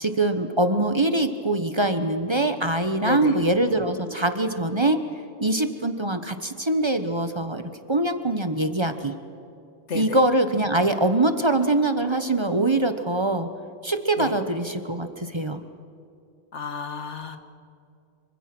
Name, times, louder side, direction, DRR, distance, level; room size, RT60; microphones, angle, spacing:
voice 1, 0.0-5.0 5.4-7.6 7.9-9.1 9.9-13.5 13.8-15.6, right 2 dB, 25° right, 8 dB, 1.1 m, -23 dB
voice 2, 3.0-3.4 9.9-10.2 14.2-14.3 16.5-17.4, left 5 dB, 85° left, 8 dB, 1.8 m, -31 dB
26.0 x 24.5 x 6.1 m, 2.5 s
omnidirectional pair, 1.2 m